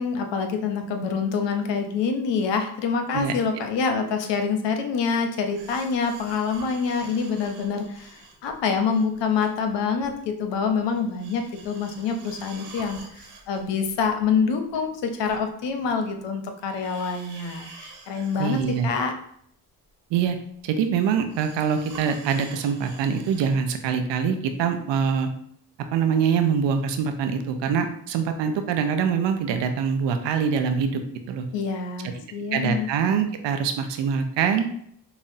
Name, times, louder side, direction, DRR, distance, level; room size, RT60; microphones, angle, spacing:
voice 1, 0.0-18.6 18.8-19.1 31.5-32.9, left 5 dB, 85° left, 5 dB, 0.7 m, -26 dB
voice 2, 3.1-3.6 18.4-18.9 20.1-20.4 20.6-25.3 25.9-31.0 31.3-31.5 32.5-34.7, right 6 dB, 90° right, 6 dB, 0.5 m, -24 dB
sound 1, 5.5-9.7 10.0-10.2 10.5-16.2 16.6-19.0 19.3-19.4 20.2-20.3 21.3-23.5 24.0-24.1, right 4 dB, 70° right, 1.1 m, -47 dB
5.5 x 2.0 x 2.6 m, 0.67 s
supercardioid pair, 50°, 42 cm